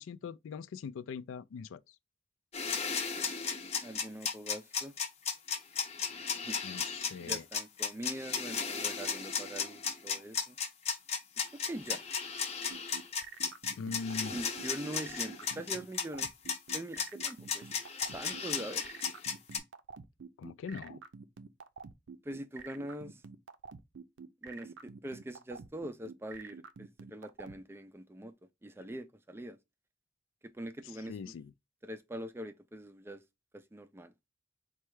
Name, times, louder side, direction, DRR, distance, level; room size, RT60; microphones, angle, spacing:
voice 1, 0.0-2.0 6.6-7.5 13.7-14.4 15.1-15.2 20.4-21.0 31.1-31.5, left 5 dB, 90° left, 0.3 m, -41 dB
sound 1, 2.5-19.6, left 6 dB, 35° left, 0.6 m, -35 dB
voice 2, 3.8-4.9 6.1-6.6 7.2-10.6 11.5-12.0 14.3-16.3 16.7-17.7 18.1-18.9 22.2-23.2 24.4-28.3 28.6-29.6 30.4-31.3 31.8-33.2 33.5-34.1, right 1 dB, 10° right, 0.3 m, -43 dB
sound 2, 12.7-27.5, right 5 dB, 75° right, 0.5 m, -47 dB
4.2 x 2.3 x 4.6 m
head